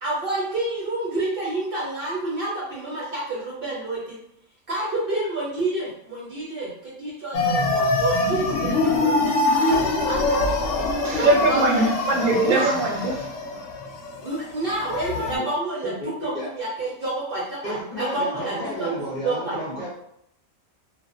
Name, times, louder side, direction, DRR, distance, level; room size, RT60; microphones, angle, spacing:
voice 1, 0.0-4.2 4.7-10.9 11.2-11.8 12.4-12.7 14.2-15.9 16.2-19.6, right 2 dB, 50° right, -6 dB, 0.7 m, -29 dB
sound 1, 7.3-15.4, left 2 dB, 70° left, 0.8 m, -24 dB
voice 2, 11.0-13.3, right 2 dB, 80° right, 0 dB, 1.0 m, -21 dB
voice 3, 15.1-15.4 15.8-16.5 17.6-19.9, equal, 35° left, -9 dB, 0.8 m, -32 dB
2.5 x 2.3 x 2.4 m, 0.75 s
omnidirectional pair, 1.5 m